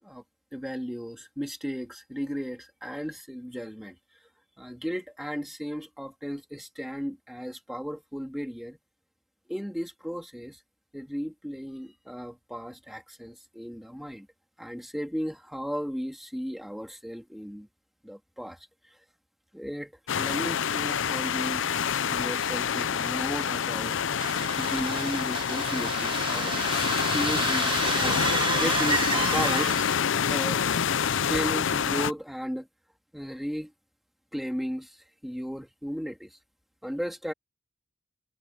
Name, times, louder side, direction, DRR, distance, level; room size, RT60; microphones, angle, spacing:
voice 1, 0.5-4.0 4.6-8.8 9.5-10.6 10.9-14.3 14.6-17.7 18.0-18.6 19.5-19.9 20.2-21.7 22.1-24.0 24.6-28.2 28.6-30.0 30.3-30.6 31.3-32.7 33.1-33.7 34.3-36.3 36.8-37.3, equal, ahead, 2.8 m, -35 dB
sound 1, 20.1-32.1, left 7 dB, 80° left, 0.5 m, -27 dB
sound 2, 24.2-30.1, right 5 dB, 25° right, 1.5 m, -31 dB
head